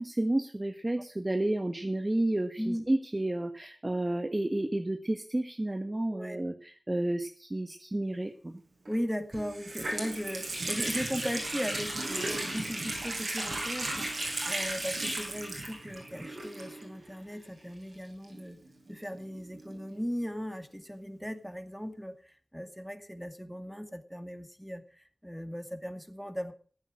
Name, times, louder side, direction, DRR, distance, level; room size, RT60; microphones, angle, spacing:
voice 1, 0.0-8.6, right 1 dB, 30° right, 7 dB, 1.3 m, -31 dB
voice 2, 6.1-6.4 8.9-18.6 18.9-26.5, equal, ahead, 7 dB, 2.2 m, -38 dB
Water tap faucet, 8.8-8.9 9.3-17.1 17.3-17.4 18.2-19.8, right 1 dB, 85° right, 5.9 m, -35 dB
15.5 x 9.1 x 6.2 m, 0.43 s
wide cardioid pair, 50°, 0 cm